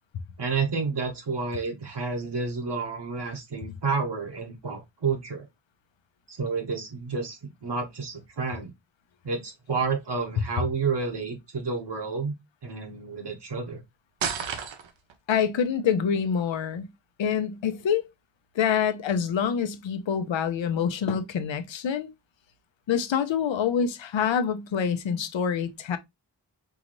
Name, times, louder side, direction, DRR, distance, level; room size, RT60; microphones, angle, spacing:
voice 1, 0.4-5.4 6.3-8.7 9.2-12.3 12.6-13.8, right 4 dB, 65° right, 1.2 m, -30 dB
sound 1, 14.2-15.1, right 7 dB, 85° right, 0.8 m, -31 dB
voice 2, 15.3-16.9 17.2-18.1 18.5-22.1 22.9-26.0, left 7 dB, 85° left, 0.7 m, -26 dB
4.7 x 2.6 x 3.0 m
wide cardioid pair, 120°, 44 cm